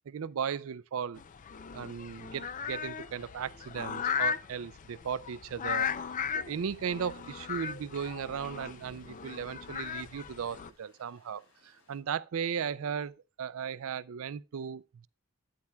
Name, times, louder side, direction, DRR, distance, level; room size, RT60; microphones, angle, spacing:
voice 1, 0.1-1.2 1.7-5.9 6.3-15.1, right 7 dB, 65° right, 0.4 m, -36 dB
sound 1, 1.2-10.7, left 7 dB, 35° left, 0.4 m, -37 dB
sound 2, 6.4-12.0, left 2 dB, 90° left, 5.2 m, -67 dB
13.0 x 9.5 x 2.3 m
head